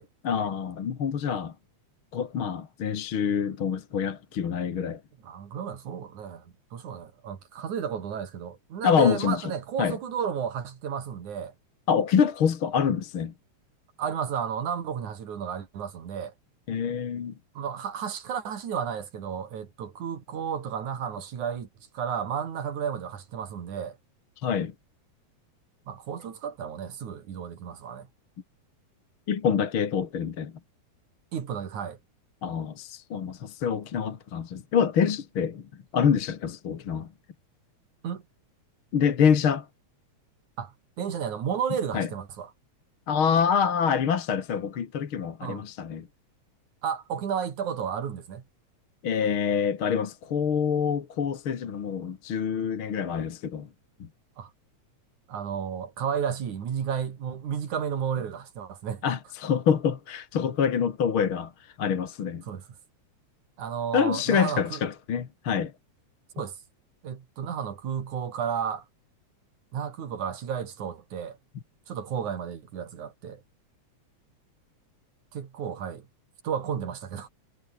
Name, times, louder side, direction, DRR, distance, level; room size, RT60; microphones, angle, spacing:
voice 1, 0.2-1.5 2.1-5.0 8.8-9.5 9.8-10.0 11.9-13.3 16.7-17.3 24.4-24.7 29.3-30.5 32.4-35.7 35.9-37.1 38.9-39.7 41.9-42.1 43.1-46.1 49.0-53.7 54.0-54.1 59.0-61.5 61.8-62.4 63.9-65.7, left 7 dB, 50° left, 2.4 m, -26 dB
voice 2, 5.2-11.5 14.0-16.3 17.6-21.7 21.9-24.0 25.9-28.1 31.3-32.0 38.0-38.2 40.6-42.5 45.4-45.6 46.8-48.4 54.4-54.5 55.3-59.0 62.4-62.7 63.6-64.8 66.3-66.6 67.0-68.9 69.7-71.4 71.9-73.4 75.3-76.1 76.4-77.3, right 7 dB, 80° right, 4.0 m, -32 dB
omnidirectional pair, 3.4 m